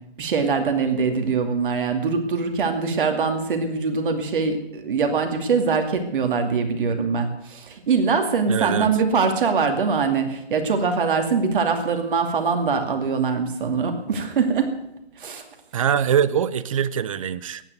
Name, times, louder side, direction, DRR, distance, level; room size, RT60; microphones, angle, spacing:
voice 1, 0.2-14.7 15.2-15.4, right 5 dB, 50° right, 5 dB, 2.5 m, -23 dB
voice 2, 8.5-8.9 15.7-17.6, right 8 dB, 30° right, 16 dB, 0.6 m, -23 dB
14.5 x 9.8 x 8.0 m, 0.82 s
hypercardioid pair, 145°, 33 cm